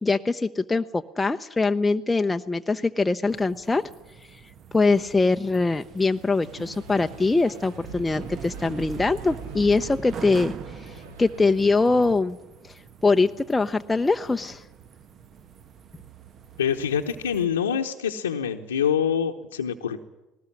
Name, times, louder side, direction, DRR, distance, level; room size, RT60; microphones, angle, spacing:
voice 1, 0.0-3.8 4.3-4.4 4.7-10.5 10.8-12.4 12.6-14.6, left 3 dB, 15° left, 6 dB, 0.7 m, -23 dB
sound 1, 3.3-17.5, right 7 dB, 45° right, 1.2 m, -43 dB
sound 2, 6.4-12.1, right 2 dB, 75° right, 2.4 m, -44 dB
voice 2, 16.6-20.0, left 8 dB, 90° left, -1 dB, 1.0 m, -25 dB
19.5 x 19.0 x 9.9 m, 1.0 s
hypercardioid pair, 65°, 0 cm